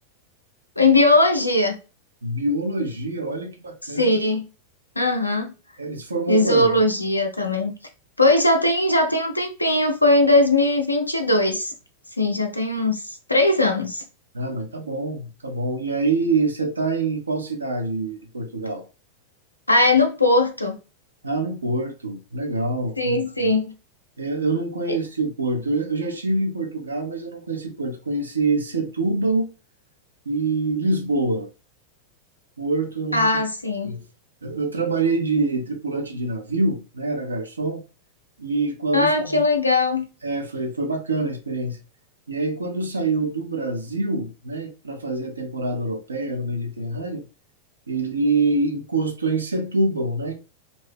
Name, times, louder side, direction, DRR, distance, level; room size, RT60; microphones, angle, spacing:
voice 1, 0.8-1.8 3.9-4.4 5.0-5.5 6.3-7.7 8.2-11.7 12.2-14.0 19.7-20.8 23.0-23.7 24.9-25.0 33.1-33.9 38.9-40.1, left 2 dB, 85° left, 0.6 m, -19 dB
voice 2, 2.2-4.2 5.8-6.7 14.3-18.8 21.2-23.2 24.2-29.5 30.3-31.5 32.6-33.3 33.8-34.0 34.4-37.8 38.4-39.4 40.2-41.8 42.3-47.2 47.9-50.3, right 3 dB, 75° right, 0.7 m, -25 dB
2.7 x 2.6 x 3.4 m
figure-of-eight pair, 90°, 0 cm